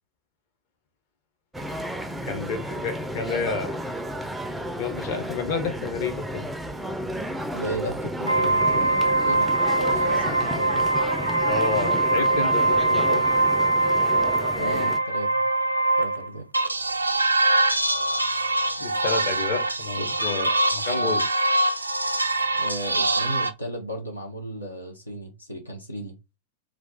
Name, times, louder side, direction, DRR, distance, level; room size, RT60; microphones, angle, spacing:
sound 1, 1.5-15.0, equal, 5° right, 0.4 m, -32 dB
voice 1, 2.2-3.8 4.8-6.5 11.4-13.3 18.8-21.2, left 5 dB, 50° left, 0.8 m, -30 dB
voice 2, 7.5-9.5 9.8-10.9 14.6-15.3 16.0-16.4 20.0-20.3 20.9-21.2 22.6-26.2, equal, 85° left, 0.7 m, -35 dB
sound 2, 8.3-16.3 16.5-23.5, right 2 dB, 85° right, 0.3 m, -23 dB
2.3 x 2.3 x 3.8 m
figure-of-eight pair, 90°, 0 cm